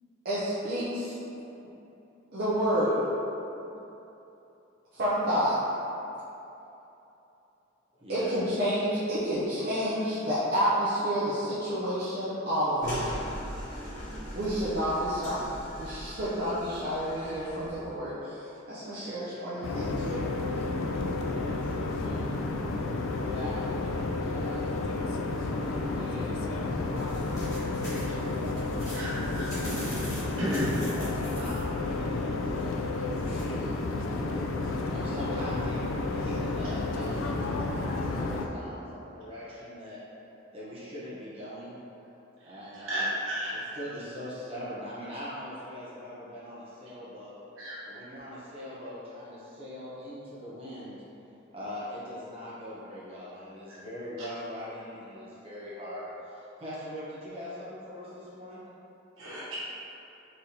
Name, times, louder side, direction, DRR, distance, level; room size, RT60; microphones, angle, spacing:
voice 1, 0.2-1.2 2.3-3.0 4.9-5.6 8.1-13.1 14.3-15.5 15.8-20.3, equal, 50° right, -12 dB, 0.7 m, -29 dB
voice 2, 7.9-8.3 9.6-9.8 21.3-22.4 23.2-24.7 25.7-30.1 30.9-33.8 34.8-40.0 40.5-41.8 42.4-43.1 43.5-47.4 47.9-51.0 51.5-58.6, equal, 30° right, -10 dB, 1.0 m, -42 dB
sound 1, 12.8-17.9, equal, 45° left, 1.4 m, -39 dB
sound 2, 19.6-38.5, left 3 dB, 75° left, 0.4 m, -31 dB
sound 3, 26.7-34.5, equal, 15° left, 1.2 m, -46 dB
voice 3, 28.9-29.4 30.4-30.7 42.8-43.6 47.6-47.8 59.2-59.6, equal, 85° right, -9 dB, 1.3 m, -32 dB
4.1 x 3.4 x 2.8 m, 2.9 s
head